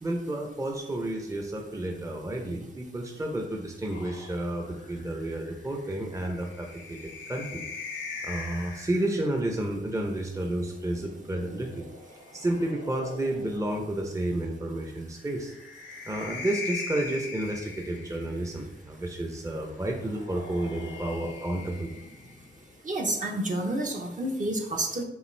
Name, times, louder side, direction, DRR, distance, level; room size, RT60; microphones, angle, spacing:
voice 1, 0.0-7.6 8.2-11.8 12.3-15.5 16.1-21.9, right 1 dB, 15° right, 1 dB, 0.6 m, -31 dB
sound 1, 3.9-9.4 10.8-13.8 15.1-18.6 19.9-22.8, left 4 dB, 85° left, 0.9 m, -42 dB
voice 2, 22.8-25.0, right 1 dB, 45° right, 1 dB, 0.8 m, -29 dB
5.5 x 2.4 x 3.3 m, 0.91 s
cardioid pair, 70°, 19 cm